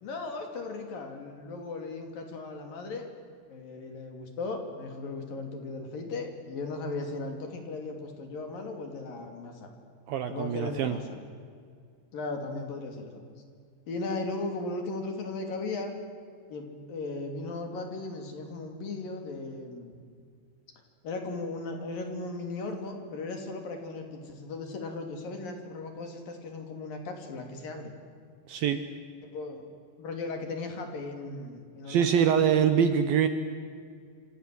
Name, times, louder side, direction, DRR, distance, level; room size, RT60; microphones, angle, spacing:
voice 1, 0.0-3.1 3.5-9.7 10.3-11.1 12.1-13.2 13.9-15.9 16.5-20.0 21.0-27.9 29.3-29.6 30.0-32.2, left 3 dB, 55° left, 4 dB, 4.4 m, -37 dB
voice 2, 10.1-11.0 28.5-28.8 31.9-33.3, right 8 dB, 70° right, 9 dB, 2.5 m, -24 dB
27.5 x 27.0 x 7.8 m, 2.2 s
omnidirectional pair, 5.1 m